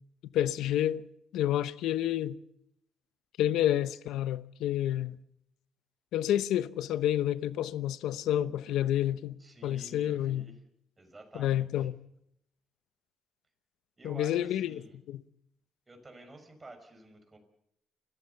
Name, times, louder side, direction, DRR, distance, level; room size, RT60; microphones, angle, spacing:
voice 1, 0.3-1.0 1.3-2.4 3.4-5.2 6.1-9.4 9.6-10.5 11.3-11.9 14.0-14.8 15.1-15.2, left 12 dB, 85° left, 0.8 m, -29 dB
voice 2, 9.4-10.6 11.0-11.9 14.0-15.0 15.9-17.4, right 2 dB, 25° right, 5.8 m, -50 dB
29.5 x 14.5 x 7.0 m
cardioid pair, 90°, 0 cm